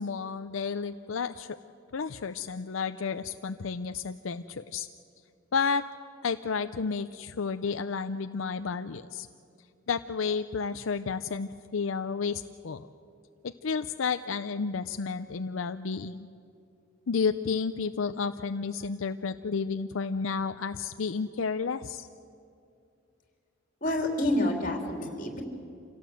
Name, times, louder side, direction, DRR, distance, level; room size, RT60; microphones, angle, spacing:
voice 1, 0.0-1.6 1.9-4.9 5.5-5.8 6.2-9.3 9.9-12.9 13.4-16.3 17.1-22.1, left 5 dB, 90° left, 10 dB, 0.6 m, -31 dB
voice 2, 23.8-25.4, left 1 dB, 45° left, 2 dB, 3.4 m, -28 dB
27.0 x 17.5 x 7.8 m, 2.4 s
head